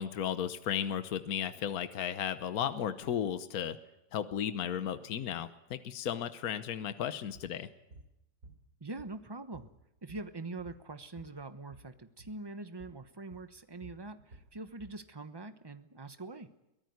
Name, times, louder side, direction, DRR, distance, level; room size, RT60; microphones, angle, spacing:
voice 1, 0.0-3.8 4.1-7.7, left 9 dB, 65° left, 11 dB, 1.4 m, -34 dB
sound 1, 7.3-7.5 7.9-8.1 8.4-9.3 9.5-11.4 11.6-11.9 12.2-12.4 12.8-13.0 13.3-15.0, right 1 dB, 60° right, 3.7 m, -54 dB
voice 2, 8.8-9.7 10.0-16.5, right 3 dB, 20° right, 10 dB, 0.9 m, -44 dB
23.5 x 17.5 x 9.5 m, 0.91 s
omnidirectional pair, 1.7 m